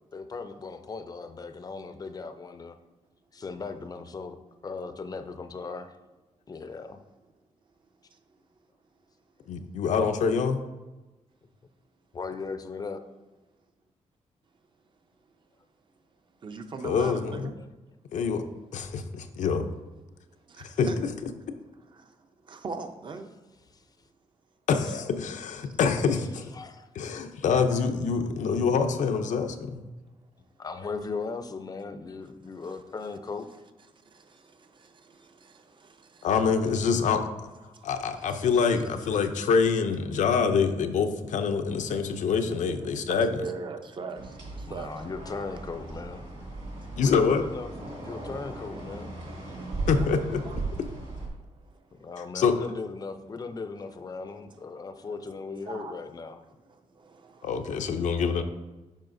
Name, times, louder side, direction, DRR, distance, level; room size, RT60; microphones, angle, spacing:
voice 1, 0.1-2.8 3.3-4.4 4.6-5.9 6.5-7.0 12.1-13.0 17.6-17.7 23.7-23.8 26.5-26.9 30.6-33.5 44.6-46.3 47.0-49.1 51.9-56.4, left 4 dB, 30° left, 9 dB, 0.5 m, -37 dB
voice 2, 9.5-10.6 16.8-17.5 18.1-19.7 20.6-20.9 24.7-26.5 27.0-29.8 36.2-37.3 37.8-43.4 47.0-47.5 49.9-50.4 50.8-50.9 52.3-52.6 57.4-58.4, left 5 dB, 80° left, 7 dB, 0.6 m, -25 dB
voice 3, 16.4-17.5 20.1-21.0 21.8-22.0 22.4-23.3 25.6-25.7 32.6-32.8 33.9-36.3 37.7-37.9 38.1-38.7 41.5-42.3 42.8-44.9 49.3-50.1 50.5-50.6 51.5-52.1 55.0-55.2 55.7-56.0 56.7-58.1, right 4 dB, 40° right, 7 dB, 0.6 m, -42 dB
sound 1, 44.1-51.3, right 2 dB, 55° right, 2.1 m, -37 dB
8.8 x 5.6 x 2.6 m, 1.1 s
wide cardioid pair, 130°, 13 cm